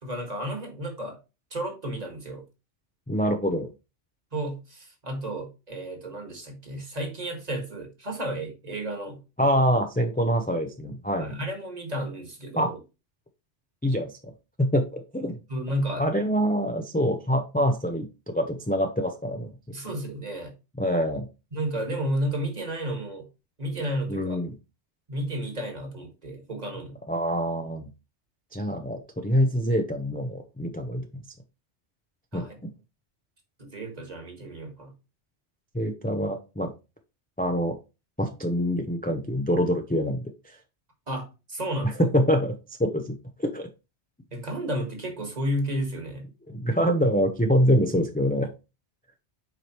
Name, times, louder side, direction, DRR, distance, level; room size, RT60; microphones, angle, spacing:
voice 1, 0.0-1.2 1.5-2.4 4.3-9.2 11.2-12.8 15.5-16.1 19.7-20.5 21.5-23.3 23.6-24.4 25.1-27.0 32.3-32.5 33.6-34.9 41.1-42.0 44.3-46.3, right 1 dB, 35° right, 1.9 m, -32 dB
voice 2, 3.1-3.7 9.4-11.4 12.6-12.7 13.8-14.3 14.6-15.4 16.0-19.5 20.8-21.3 24.1-24.5 27.1-27.9 28.5-31.1 32.3-32.4 35.7-36.7 37.4-37.8 38.2-40.6 41.8-43.7 46.5-48.5, equal, 10° left, 0.6 m, -25 dB
7.6 x 4.9 x 3.1 m
omnidirectional pair, 1.2 m